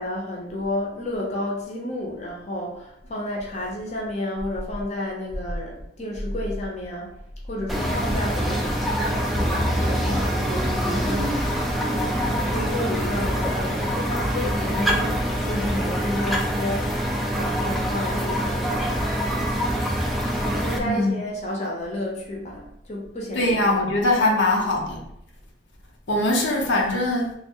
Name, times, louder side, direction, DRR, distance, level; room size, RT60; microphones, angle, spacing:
voice 1, 0.0-7.1 7.5-11.6 11.9-16.9 17.3-18.9 20.4-24.3, left 1 dB, 40° left, -2 dB, 0.6 m, -31 dB
sound 1, 7.7-20.8, equal, ahead, 0.3 m, -25 dB
voice 2, 20.8-21.2 23.3-25.0 26.1-27.3, left 2 dB, 80° left, -1 dB, 0.6 m, -22 dB
3.1 x 2.0 x 3.5 m, 0.76 s
head